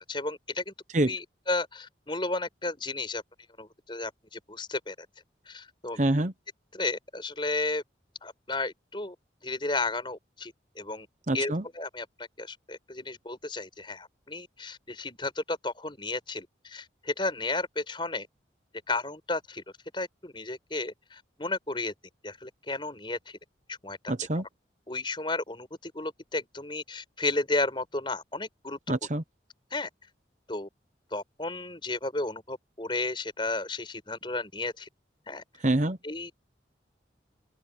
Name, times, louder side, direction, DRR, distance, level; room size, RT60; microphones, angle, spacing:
voice 1, 0.1-0.7 1.1-3.2 3.6-5.1 5.4-6.0 6.7-7.8 8.2-9.1 9.4-11.1 11.3-18.3 18.9-19.6 19.9-21.9 22.2-23.4 23.7-24.1 24.9-28.9 29.7-29.9 30.5-30.7 31.1-34.9 35.3-35.4 36.0-36.3, left 2 dB, 25° left, 5.2 m, -33 dB
voice 2, 6.0-6.3 11.3-11.6 24.1-24.4 28.9-29.2 35.6-36.0, right 1 dB, 40° right, 0.9 m, -26 dB
open air
head